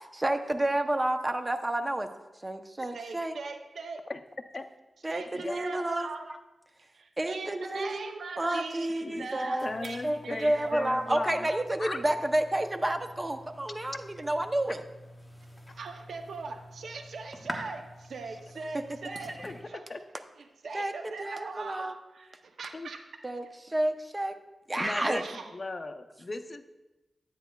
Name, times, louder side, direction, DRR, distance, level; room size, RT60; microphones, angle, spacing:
voice 1, 0.1-2.1 2.4-3.3 5.0-6.1 7.2-9.7 10.0-14.8 19.4-19.5 20.7-20.9 21.2-21.9 23.2-24.3 24.7-25.2, right 1 dB, 25° right, 7 dB, 0.7 m, -30 dB
voice 2, 2.9-4.1 5.1-6.3 6.9-10.9 15.7-19.8 20.6-23.1 25.1-25.5, right 4 dB, 80° right, 5 dB, 0.6 m, -41 dB
voice 3, 9.6-11.5 11.8-12.0 15.7-15.8 19.4-19.6 19.9-20.0 22.7-22.9 24.8-26.7, left 2 dB, 40° left, 7 dB, 0.6 m, -37 dB
sound 1, 9.6-19.6, equal, 15° left, 1.1 m, -47 dB
10.0 x 8.9 x 2.3 m, 1.0 s
cardioid pair, 65°, 0 cm